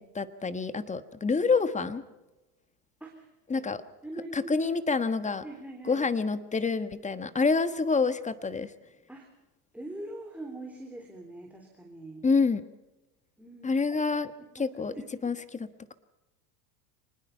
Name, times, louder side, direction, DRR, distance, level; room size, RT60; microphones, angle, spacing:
voice 1, 0.0-2.0 3.5-3.8 4.3-5.4 5.9-8.7 12.2-12.6 13.6-14.3 14.5-14.9 15.2-15.9, left 4 dB, 15° left, 12 dB, 1.4 m, -27 dB
voice 2, 3.0-3.7 4.0-4.7 5.4-6.1 9.1-9.3 9.7-12.3 13.4-14.0 14.4-15.3, right 2 dB, 5° right, 1 dB, 3.6 m, -43 dB
25.0 x 20.0 x 5.6 m, 1.0 s
hypercardioid pair, 105°, 48 cm